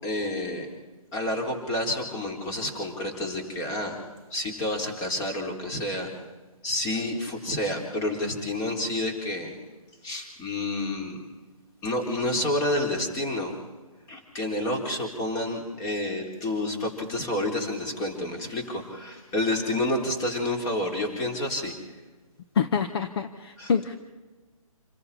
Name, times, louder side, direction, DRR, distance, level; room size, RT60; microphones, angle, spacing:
voice 1, 0.0-0.7 1.1-4.0 4.3-6.1 6.6-9.6 10.0-11.2 11.8-13.5 14.1-21.8 23.6-23.7, left 1 dB, 20° left, 2 dB, 3.9 m, -29 dB
voice 2, 22.5-24.0, left 6 dB, 45° left, 8 dB, 1.2 m, -26 dB
27.5 x 22.0 x 4.3 m, 1.3 s
figure-of-eight pair, 140°, 18 cm